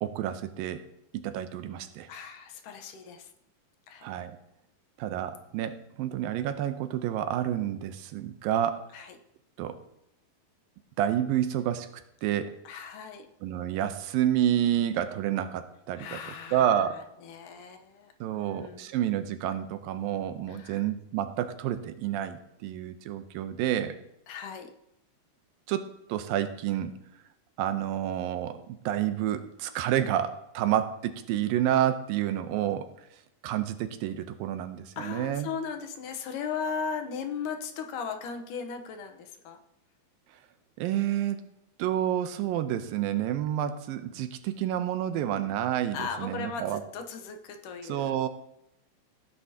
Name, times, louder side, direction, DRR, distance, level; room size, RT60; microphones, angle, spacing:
voice 1, 0.0-0.8 1.1-2.1 4.0-4.4 5.0-8.9 9.6-9.8 11.0-11.9 12.2-12.5 13.4-17.0 18.2-24.0 25.7-26.9 27.6-32.9 33.4-35.5 40.8-41.4 41.8-46.8 47.8-48.3, right 11 dB, 85° right, 10 dB, 2.4 m, -29 dB
voice 2, 2.1-3.3 3.9-4.0 8.9-9.2 12.7-13.3 16.0-16.8 17.2-18.9 20.5-20.8 24.3-24.7 35.0-39.6 45.9-48.2, left 6 dB, 70° left, 5 dB, 2.4 m, -37 dB
17.0 x 9.6 x 2.8 m, 0.79 s
omnidirectional pair, 4.1 m